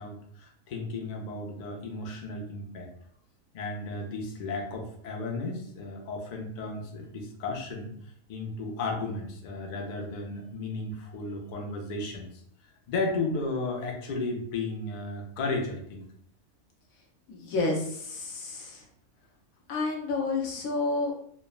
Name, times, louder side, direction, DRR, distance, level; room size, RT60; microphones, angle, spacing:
voice 1, 0.0-2.9 3.5-7.9 8.3-12.3 12.9-16.1, left 3 dB, 65° left, 1 dB, 0.4 m, -34 dB
voice 2, 17.3-18.8 19.7-21.1, left 3 dB, 85° left, 0 dB, 1.1 m, -30 dB
3.2 x 2.1 x 2.3 m, 0.66 s
omnidirectional pair, 1.4 m